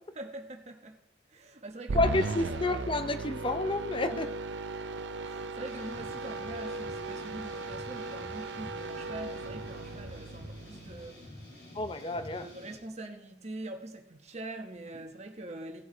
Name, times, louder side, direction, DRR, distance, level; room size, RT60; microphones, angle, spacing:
voice 1, 0.1-1.0 1.3-2.6 4.1-4.3 5.2-11.4 11.9-15.8, right 2 dB, 40° right, 1.1 m, -44 dB
voice 2, 1.9-4.3 11.7-12.4, left 2 dB, 30° left, 0.6 m, -30 dB
sound 1, 1.9-11.3, right 3 dB, 85° right, 0.6 m, -37 dB
sound 2, 5.6-12.8, left 1 dB, 70° left, 4.6 m, -48 dB
16.5 x 7.8 x 3.9 m
head